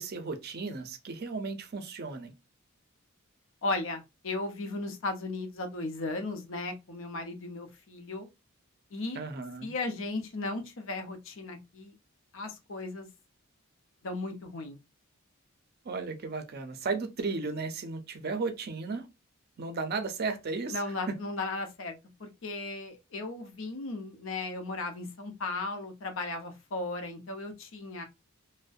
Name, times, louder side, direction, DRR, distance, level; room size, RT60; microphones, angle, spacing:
voice 1, 0.0-2.3 9.1-9.7 15.9-19.1 19.6-20.8 21.1-21.2, right 4 dB, 50° right, 0.5 m, -34 dB
voice 2, 3.6-8.3 8.9-9.2 9.6-11.9 12.3-13.1 14.0-14.8 20.7-28.0, left 2 dB, 65° left, 0.6 m, -36 dB
2.5 x 2.1 x 2.3 m
head